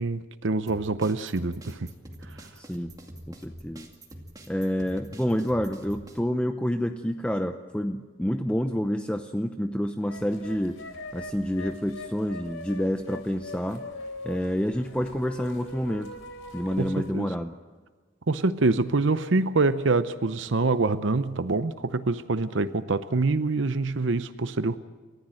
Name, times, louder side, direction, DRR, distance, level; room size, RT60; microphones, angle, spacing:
voice 1, 0.0-1.9 16.8-17.3 18.3-24.8, right 3 dB, 70° right, 0.8 m, -25 dB
sound 1, 0.7-6.2, right 1 dB, 20° right, 2.3 m, -45 dB
voice 2, 2.6-2.9 3.3-3.9 4.5-10.8 11.1-13.9 14.2-16.1 16.5-17.5, equal, 5° left, 0.7 m, -28 dB
sound 2, 10.1-17.1, left 2 dB, 90° left, 4.0 m, -42 dB
29.0 x 14.5 x 7.7 m
head